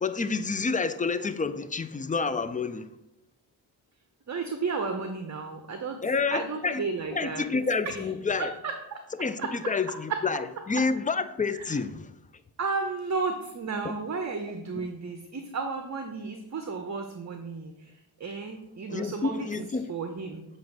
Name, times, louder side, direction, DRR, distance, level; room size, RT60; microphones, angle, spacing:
voice 1, 0.0-2.9 6.0-6.9 7.1-8.5 9.2-12.1 14.7-14.9 18.9-19.9, left 4 dB, 20° left, 0.3 m, -29 dB
voice 2, 4.3-6.0 6.3-7.5 7.8-8.1 8.4-9.0 9.4-9.5 10.1-10.2 11.5-11.8 12.6-20.4, right 4 dB, 35° right, 0.7 m, -33 dB
7.4 x 2.6 x 5.3 m
cardioid pair, 65°, 48 cm